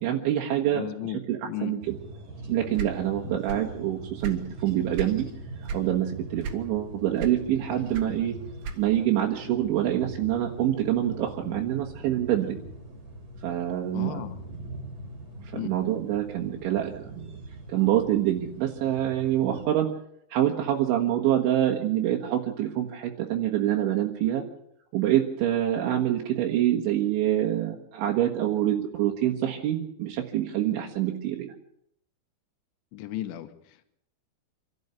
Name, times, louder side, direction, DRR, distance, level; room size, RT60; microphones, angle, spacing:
voice 1, 0.0-0.9 1.3-2.0 2.5-5.3 5.7-8.3 8.8-12.6 13.4-14.3 15.5-17.4 17.7-19.9 20.3-24.4 24.9-31.5, right 12 dB, 80° right, 0 dB, 3.8 m, -26 dB
voice 2, 0.7-1.8 3.2-3.4 13.9-14.4 15.5-15.7 32.9-33.8, left 13 dB, 75° left, 8 dB, 3.6 m, -35 dB
sound 1, 1.8-19.7, right 2 dB, 30° right, 3.6 m, -42 dB
sound 2, 2.7-3.8 4.0-5.2 5.6-5.9 6.4-6.9 7.2-9.1, right 5 dB, 60° right, 3.2 m, -35 dB
27.0 x 12.5 x 8.3 m, 0.72 s
omnidirectional pair, 5.5 m